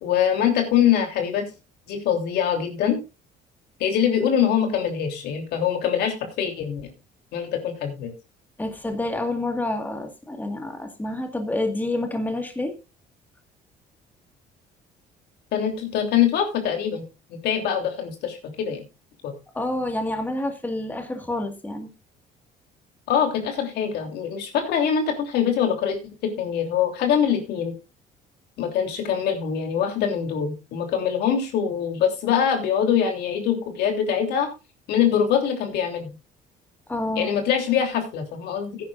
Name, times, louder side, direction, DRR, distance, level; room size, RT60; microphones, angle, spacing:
voice 1, 0.0-1.4 1.9-3.0 3.8-6.8 7.3-8.1 15.5-17.0 17.4-18.8 19.2-19.3 23.1-27.7 28.6-34.5 34.9-36.1 37.1-38.8, left 8 dB, 80° left, 4 dB, 3.1 m, -23 dB
voice 2, 8.6-12.8 19.5-21.9 36.9-37.3, left 1 dB, 10° left, 5 dB, 1.8 m, -28 dB
16.5 x 9.7 x 2.5 m, 0.29 s
cardioid pair, 110°, 17 cm